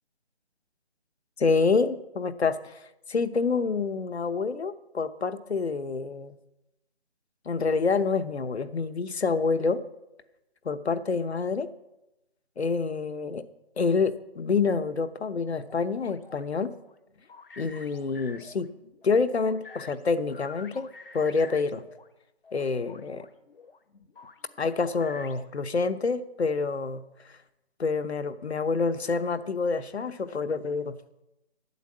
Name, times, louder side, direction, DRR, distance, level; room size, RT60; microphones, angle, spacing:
voice 1, 1.4-6.3 7.5-9.8 10.6-11.7 12.6-13.4 13.8-16.7 17.6-18.7 19.0-20.9 21.1-21.8 22.5-23.3 24.6-27.0 27.8-30.9, left 4 dB, 80° left, 11 dB, 0.9 m, -27 dB
sound 1, 15.3-22.1 22.4-25.6, left 4 dB, 60° left, 0.9 m, -49 dB
9.5 x 8.2 x 7.3 m, 0.93 s
figure-of-eight pair, 170°, 32 cm